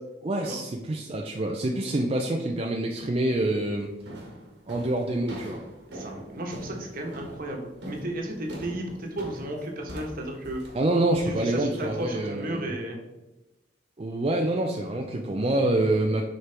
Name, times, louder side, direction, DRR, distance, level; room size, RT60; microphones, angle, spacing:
voice 1, 0.2-3.9 4.7-5.6 10.7-12.7 14.0-16.2, right 1 dB, 35° right, 1 dB, 0.4 m, -26 dB
sound 1, 3.2-3.6 4.1-12.0, right 1 dB, 75° right, 1.5 m, -42 dB
voice 2, 5.9-10.6 11.2-13.0, right 1 dB, 55° right, 1 dB, 1.2 m, -34 dB
6.6 x 4.5 x 3.4 m, 1.0 s
head